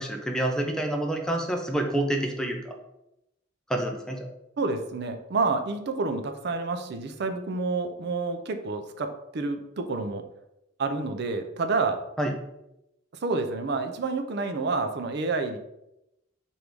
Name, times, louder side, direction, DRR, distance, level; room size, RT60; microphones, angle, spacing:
voice 1, 0.0-2.7 3.7-4.3 12.2-12.3, right 1 dB, 5° left, 2 dB, 0.5 m, -28 dB
voice 2, 4.6-10.2 10.8-12.0 13.2-15.6, right 3 dB, 55° right, 7 dB, 0.5 m, -29 dB
3.4 x 2.6 x 4.5 m, 0.86 s
head